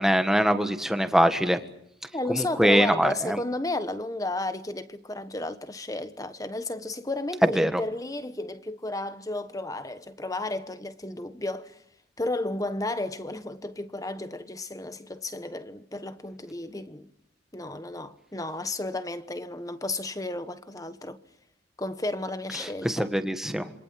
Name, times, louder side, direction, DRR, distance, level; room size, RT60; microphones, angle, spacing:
voice 1, 0.0-1.6 2.3-3.4 7.5-7.8 22.6-23.7, equal, ahead, 1.6 m, -23 dB
voice 2, 2.1-11.8 12.2-17.1 17.5-21.2 21.8-23.1, left 2 dB, 15° left, 1.2 m, -33 dB
27.5 x 24.5 x 7.7 m
head